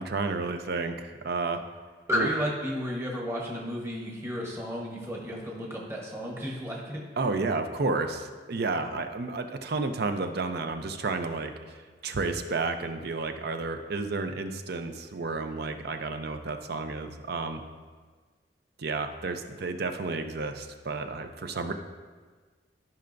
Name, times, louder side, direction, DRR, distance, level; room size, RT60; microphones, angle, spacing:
voice 1, 0.0-1.6 2.1-2.3 7.2-17.6 18.8-21.7, right 3 dB, 55° right, 7 dB, 0.6 m, -31 dB
voice 2, 2.1-7.0, equal, 15° right, -2 dB, 1.1 m, -32 dB
13.5 x 5.6 x 2.6 m, 1.5 s
head